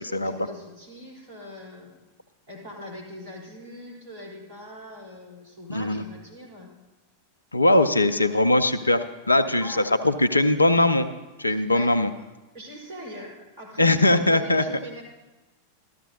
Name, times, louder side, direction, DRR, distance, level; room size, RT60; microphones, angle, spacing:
voice 1, 0.0-2.0 2.5-6.7 7.7-8.4 9.4-9.9 10.2-10.5 11.5-12.2 12.5-15.0, equal, 55° right, -2 dB, 3.8 m, -42 dB
voice 2, 5.7-6.0 7.5-9.7 10.0-11.1 11.4-12.1 13.8-14.6, left 2 dB, 80° left, 11 dB, 0.5 m, -20 dB
13.5 x 13.0 x 2.7 m, 1.1 s
figure-of-eight pair, 90°, 0 cm